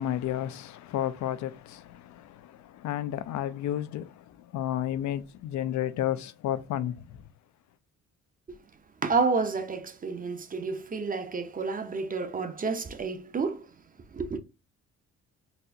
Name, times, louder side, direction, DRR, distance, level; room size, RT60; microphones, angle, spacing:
voice 1, 0.0-7.2, left 11 dB, 70° left, 0.5 m, -32 dB
voice 2, 9.0-13.7 14.1-14.4, right 4 dB, 30° right, 0.6 m, -30 dB
4.1 x 2.2 x 2.6 m
cardioid pair, 90°, 30 cm